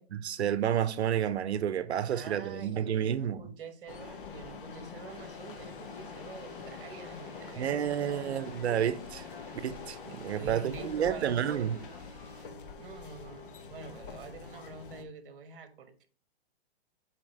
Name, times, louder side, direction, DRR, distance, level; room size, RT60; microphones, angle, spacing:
voice 1, 0.1-3.4 7.6-9.2 9.6-11.8, right 9 dB, 80° right, 0.7 m, -30 dB
voice 2, 2.1-8.5 10.0-11.8 12.8-16.1, right 4 dB, 55° right, 1.2 m, -46 dB
sound 1, 3.9-15.0, left 5 dB, 50° left, 0.8 m, -45 dB
sound 2, 5.1-12.5, equal, 20° left, 2.0 m, -56 dB
7.5 x 4.3 x 3.1 m
hypercardioid pair, 170°, 32 cm